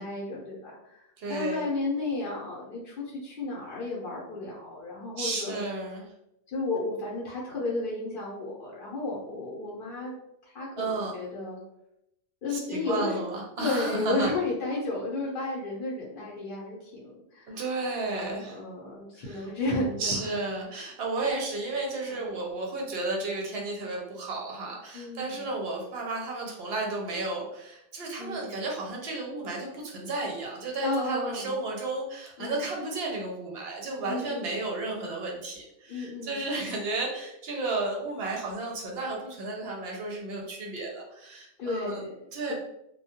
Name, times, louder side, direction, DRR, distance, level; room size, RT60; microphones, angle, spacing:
voice 1, 0.0-5.6 6.5-10.1 10.4-11.6 12.4-13.2 13.6-17.6 18.1-20.2 22.1-22.4 24.9-25.5 28.2-28.5 30.8-31.6 32.4-32.7 34.1-34.6 35.9-36.5 41.6-42.1 42.5-42.6, left 2 dB, 55° left, -5 dB, 0.8 m, -33 dB
voice 2, 1.2-1.6 5.2-6.0 10.8-11.1 12.5-14.3 17.5-18.6 19.2-19.4 20.0-42.0 42.3-42.5, right 2 dB, 60° right, 0 dB, 0.7 m, -33 dB
2.2 x 2.2 x 2.8 m, 0.83 s
omnidirectional pair, 1.2 m